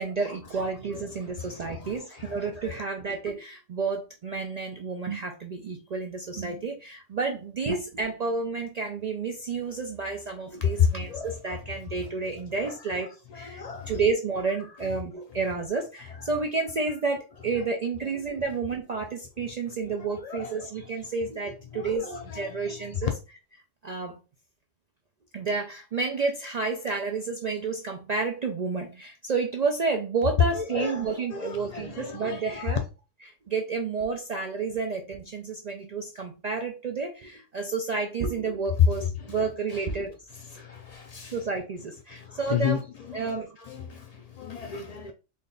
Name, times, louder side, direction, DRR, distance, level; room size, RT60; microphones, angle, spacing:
voice 1, 0.0-23.1 23.8-24.2 25.3-32.8 33.5-40.1 41.3-42.8 43.1-43.5, right 4 dB, 60° right, 0.4 m, -30 dB
voice 2, 1.4-2.6 10.6-11.4 12.5-12.7 13.3-13.9 17.6-17.7 19.9-20.7 21.7-22.8 30.5-32.8 39.2-39.3 39.7-39.8 40.5-41.4 42.1-42.8 43.1-45.1, left 7 dB, 90° left, 0.3 m, -33 dB
3.6 x 2.2 x 3.8 m
omnidirectional pair, 1.3 m